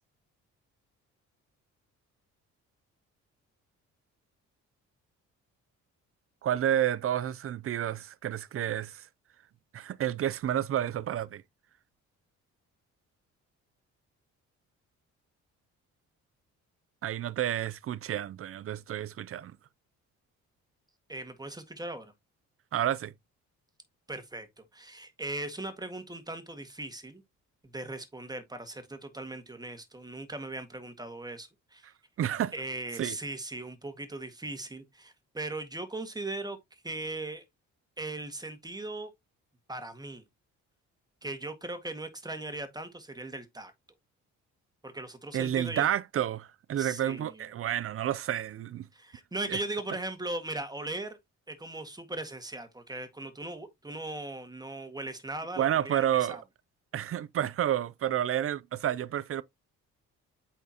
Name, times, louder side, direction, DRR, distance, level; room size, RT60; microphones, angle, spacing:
voice 1, 6.4-9.1 9.7-11.4 17.0-19.6 22.7-23.1 32.2-32.5 33.0-33.2 45.3-48.9 49.5-49.6 55.6-56.4 56.9-59.4, right 11 dB, 50° right, 0.5 m, -30 dB
voice 2, 21.1-22.1 24.1-27.2 27.6-31.9 32.5-37.4 38.0-39.1 39.7-40.2 41.2-43.7 44.8-45.9 46.8-47.5 48.9-51.2 51.5-56.4, right 2 dB, 15° right, 1.8 m, -39 dB
8.3 x 4.6 x 2.9 m
cardioid pair, 90°, 30 cm